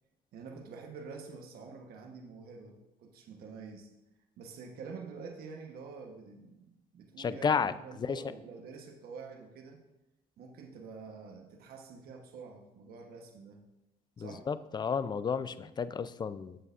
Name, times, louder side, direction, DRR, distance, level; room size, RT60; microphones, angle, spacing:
voice 1, 0.3-3.9 4.4-9.8 10.4-13.6 14.2-14.5, right 5 dB, 65° right, 3 dB, 1.2 m, -47 dB
voice 2, 7.2-7.7 8.1-8.2 14.2-16.6, left 6 dB, 25° left, 14 dB, 0.4 m, -32 dB
15.5 x 6.7 x 2.5 m, 0.94 s
cardioid pair, 110°, 17 cm